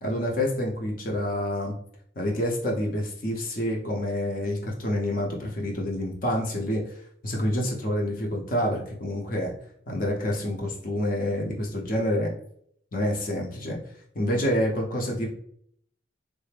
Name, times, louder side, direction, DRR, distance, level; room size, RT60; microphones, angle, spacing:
voice 1, 0.0-1.7 2.2-6.9 7.2-9.5 9.9-12.3 12.9-13.8 14.1-15.3, left 1 dB, 45° left, 0 dB, 0.6 m, -27 dB
3.2 x 2.0 x 3.3 m, 0.65 s
head